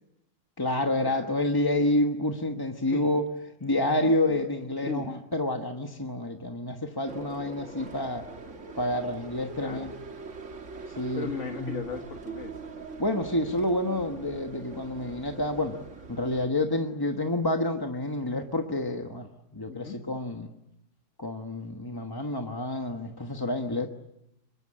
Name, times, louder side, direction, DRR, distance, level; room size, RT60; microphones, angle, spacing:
voice 1, 0.6-3.3 3.6-8.3 8.8-9.9 11.0-11.3 11.6-11.8 13.0-15.8 16.1-20.5 21.2-23.9, left 1 dB, 15° left, 4 dB, 1.0 m, -28 dB
sound 1, 7.1-16.5, right 4 dB, 40° right, 1.9 m, -42 dB
voice 2, 9.6-9.9 11.1-12.5 19.7-20.0, left 4 dB, 40° left, 4 dB, 1.9 m, -36 dB
25.0 x 22.5 x 8.7 m, 0.83 s
omnidirectional pair, 2.0 m